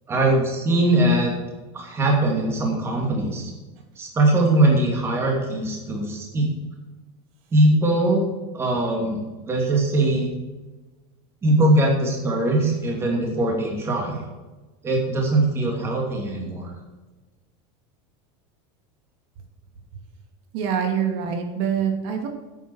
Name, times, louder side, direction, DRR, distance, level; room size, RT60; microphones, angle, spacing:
voice 1, 0.1-1.3 1.7-3.5 4.0-6.5 7.5-8.2 8.5-10.3 11.4-14.3 14.8-16.7, right 1 dB, 15° right, -1 dB, 2.7 m, -21 dB
voice 2, 20.5-22.3, right 7 dB, 55° right, 4 dB, 2.5 m, -25 dB
10.0 x 8.5 x 6.3 m, 1.2 s
supercardioid pair, 165°, 15 cm